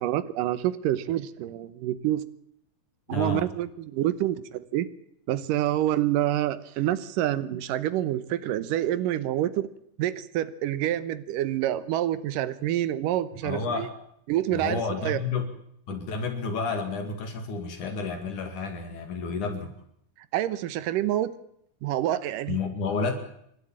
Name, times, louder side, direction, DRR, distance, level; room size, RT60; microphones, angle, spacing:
voice 1, 0.0-2.2 3.1-4.9 5.3-9.7 10.0-13.9 14.3-15.2 20.3-21.3 21.8-22.6, right 13 dB, 80° right, 14 dB, 2.7 m, -27 dB
voice 2, 3.1-3.5 13.4-13.9 14.5-15.5 15.9-19.7 22.5-23.1, left 4 dB, 70° left, 6 dB, 3.7 m, -30 dB
27.5 x 12.5 x 8.9 m, 0.72 s
omnidirectional pair, 3.8 m